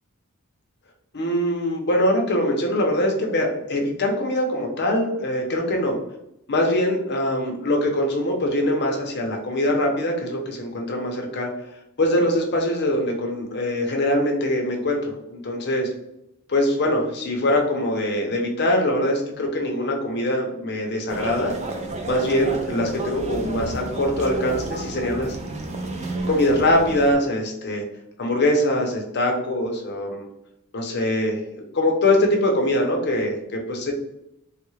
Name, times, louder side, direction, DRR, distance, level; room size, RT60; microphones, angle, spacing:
voice 1, 1.1-6.0 6.5-11.5 12.0-15.9 16.5-21.5 22.1-25.4 26.3-27.8 28.2-30.3 30.7-33.9, left 1 dB, 50° left, 2 dB, 0.7 m, -23 dB
sound 1, 21.1-27.1, right 2 dB, 30° right, 0.4 m, -31 dB
3.4 x 2.3 x 3.1 m, 0.83 s
head